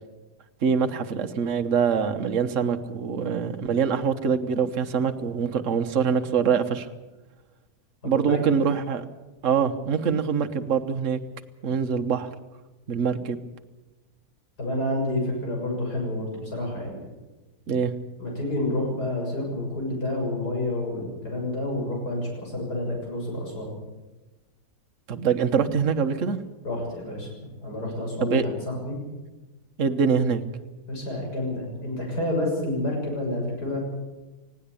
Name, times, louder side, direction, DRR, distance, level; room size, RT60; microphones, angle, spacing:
voice 1, 0.6-6.9 8.0-9.0 9.4-11.2 11.6-12.3 12.9-13.4 17.7-17.9 25.1-26.4 28.2-28.5 29.8-30.4, right 6 dB, 55° right, 7 dB, 1.4 m, -24 dB
voice 2, 8.0-8.4 14.6-17.0 18.2-23.7 26.6-27.3 27.6-29.0 30.9-33.8, left 1 dB, 75° left, 0 dB, 7.4 m, -29 dB
19.0 x 17.0 x 8.4 m, 1.1 s
omnidirectional pair, 1.7 m